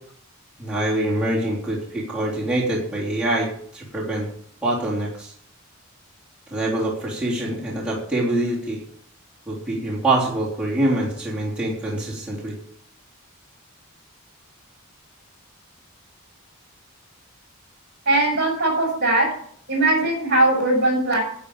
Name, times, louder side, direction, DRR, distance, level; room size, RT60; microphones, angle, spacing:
voice 1, 0.6-4.3 4.6-5.3 6.5-8.8 9.5-12.5, right 1 dB, 5° right, -7 dB, 3.3 m, -25 dB
voice 2, 18.0-19.3 19.7-21.2, right 2 dB, 50° right, -1 dB, 6.6 m, -19 dB
11.0 x 6.9 x 8.7 m, 0.63 s
head